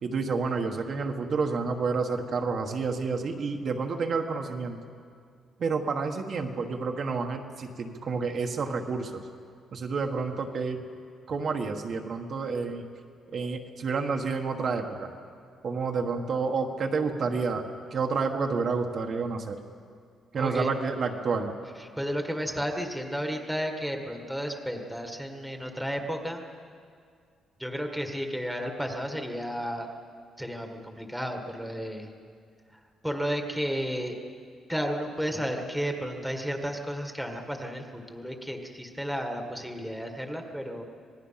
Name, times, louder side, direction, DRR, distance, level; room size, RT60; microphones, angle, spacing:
voice 1, 0.0-4.8 5.6-9.2 9.7-10.8 11.3-12.9 13.3-15.1 15.6-17.6 17.9-19.6 20.3-21.5, right 4 dB, 45° right, 3 dB, 1.4 m, -29 dB
voice 2, 20.3-20.7 21.8-26.4 27.6-29.9 30.4-32.1 33.0-34.2 34.7-40.8, equal, ahead, 3 dB, 1.6 m, -32 dB
26.0 x 19.5 x 5.8 m, 2.2 s
cardioid pair, 155°, 0 cm